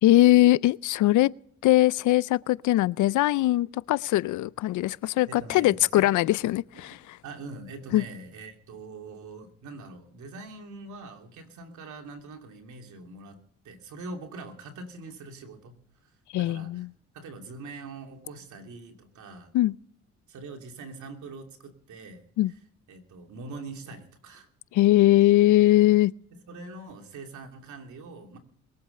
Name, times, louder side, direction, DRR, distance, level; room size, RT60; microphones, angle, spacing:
voice 1, 0.0-1.3 1.6-7.2 7.9-8.0 16.3-16.9 19.5-19.7 22.4-22.5 24.7-26.1, left 15 dB, 75° left, 0.5 m, -21 dB
voice 2, 5.3-6.1 6.7-6.8 7.2-13.4 13.6-15.7 16.0-16.1 16.4-16.9 17.1-19.5 20.3-22.2 22.9-24.5 26.5-28.4, right 3 dB, 75° right, 2.9 m, -43 dB
21.5 x 8.0 x 6.7 m
cardioid pair, 90°, 30 cm